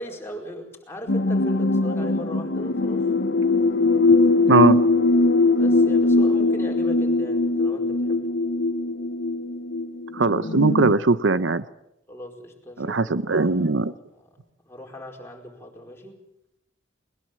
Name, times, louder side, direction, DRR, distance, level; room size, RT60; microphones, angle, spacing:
voice 1, 0.0-3.1 5.6-8.3 12.1-14.3 14.6-16.2, equal, 15° left, 0 dB, 4.8 m, -39 dB
sound 1, 1.1-10.9, left 2 dB, 65° left, 1.0 m, -21 dB
voice 2, 4.5-4.8 10.1-11.6 12.8-13.9, right 3 dB, 75° right, 15 dB, 0.8 m, -20 dB
21.5 x 21.0 x 7.6 m, 0.84 s
head